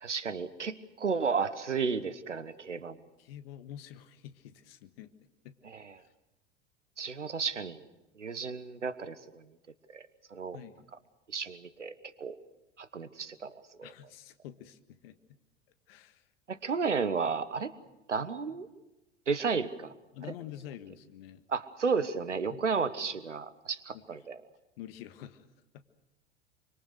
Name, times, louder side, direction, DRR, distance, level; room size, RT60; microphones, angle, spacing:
voice 1, 0.0-3.0 5.6-5.9 7.0-7.8 8.2-9.4 9.9-10.0 10.3-10.6 11.3-12.4 12.8-13.9 16.5-17.7 18.1-18.7 19.3-19.9 21.5-24.4, right 5 dB, 80° right, 15 dB, 1.3 m, -33 dB
voice 2, 3.2-5.1 5.4-5.6 10.5-10.9 13.8-15.2 15.9-16.2 20.1-21.4 22.5-22.7 23.9-24.0 24.8-25.5 25.7-25.8, left 11 dB, 55° left, 11 dB, 1.7 m, -47 dB
25.5 x 24.5 x 6.5 m, 0.99 s
figure-of-eight pair, 80°, 35 cm